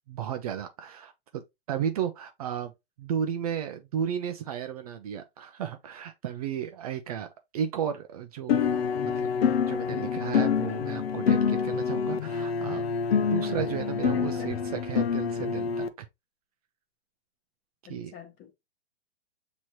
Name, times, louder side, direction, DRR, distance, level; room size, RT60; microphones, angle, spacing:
voice 1, 0.1-1.4 1.7-2.7 3.0-7.3 7.5-8.6 9.2-9.3 9.7-12.8 13.2-16.1 17.9-18.1, right 8 dB, 35° right, 0.4 m, -33 dB
sound 1, 8.5-15.9, left 6 dB, 70° left, 0.7 m, -27 dB
voice 2, 14.1-14.6 17.9-18.5, left 10 dB, 25° left, 1.0 m, -42 dB
6.2 x 3.0 x 2.9 m
hypercardioid pair, 140°, 32 cm